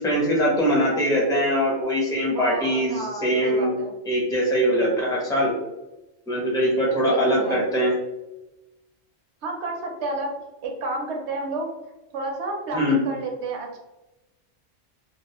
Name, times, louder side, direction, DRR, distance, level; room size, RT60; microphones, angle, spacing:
voice 1, 0.0-3.7 4.0-5.5 6.3-7.9 12.7-13.0, equal, 5° left, -4 dB, 0.6 m, -22 dB
voice 2, 2.3-3.9 7.0-7.6 9.4-10.3 10.6-11.7 12.1-13.8, right 2 dB, 75° right, 1 dB, 0.9 m, -31 dB
2.3 x 2.2 x 2.8 m, 0.98 s
omnidirectional pair, 1.2 m